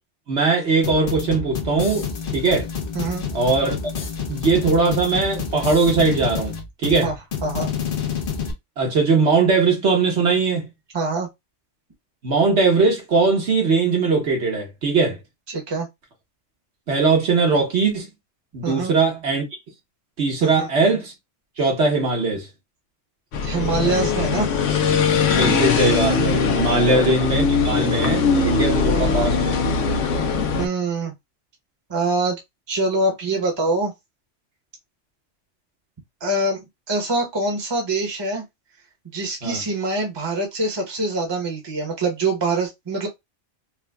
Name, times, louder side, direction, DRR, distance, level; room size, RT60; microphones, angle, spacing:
voice 1, 0.3-2.1 2.3-2.6 3.3-3.8 4.3-6.5 6.8-7.1 8.8-10.7 12.2-15.2 16.9-18.1 18.5-19.4 20.2-21.1 21.6-22.5 25.3-29.6 39.4-39.6, right 4 dB, 65° right, 1.3 m, -20 dB
sound 1, 0.8-8.5, left 6 dB, 55° left, 0.9 m, -28 dB
voice 2, 2.9-3.2 7.0-7.1 7.4-7.7 10.9-11.3 15.5-15.9 18.6-18.9 20.4-20.7 23.4-24.5 26.6-26.9 30.6-31.1 31.9-32.4 32.7-33.9 36.2-36.6 36.9-38.4 39.1-43.1, right 2 dB, 25° right, 0.9 m, -24 dB
sound 2, 23.3-30.7, left 5 dB, 85° left, 1.0 m, -20 dB
4.7 x 2.2 x 2.3 m
omnidirectional pair, 1.2 m